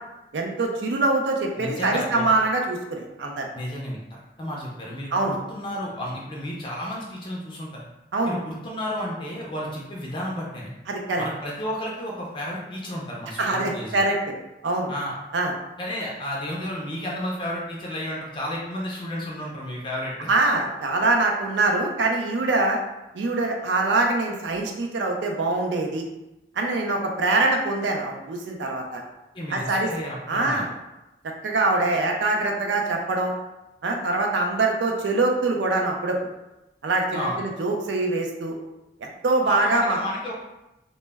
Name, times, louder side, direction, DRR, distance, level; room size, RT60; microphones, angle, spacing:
voice 1, 0.3-3.5 5.1-5.3 8.1-8.3 10.9-11.2 13.4-14.2 14.6-14.9 15.3-15.5 20.3-22.8 23.1-26.0 26.6-29.0 29.5-29.9 30.3-30.7 31.4-33.3 33.8-36.2 36.8-38.6 39.0-40.0, right 2 dB, 90° right, 1 dB, 0.4 m, -24 dB
voice 2, 1.6-2.2 3.5-7.8 8.3-10.7 11.2-14.0 14.9-15.2 15.8-20.3 29.3-30.6 37.1-37.4 39.4-40.3, equal, 25° left, -3 dB, 0.3 m, -32 dB
2.1 x 2.1 x 3.3 m, 0.97 s
head